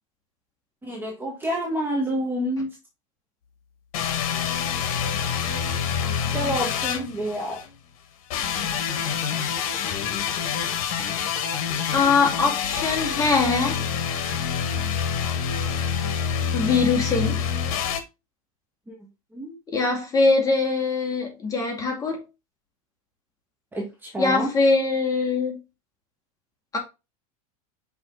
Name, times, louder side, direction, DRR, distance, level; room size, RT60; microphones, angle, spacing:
voice 1, 0.8-2.7 6.3-7.6 18.9-19.0 19.3-19.5 23.7-24.5, equal, 10° right, 1.6 m, -28 dB
sound 1, 3.9-7.7 8.3-18.0, left 7 dB, 70° left, 1.5 m, -27 dB
voice 2, 11.9-13.8 16.5-17.4 19.7-22.2 24.2-25.6 26.7-26.8, left 4 dB, 20° left, 2.3 m, -22 dB
5.8 x 5.0 x 3.9 m
supercardioid pair, 140°, 19 cm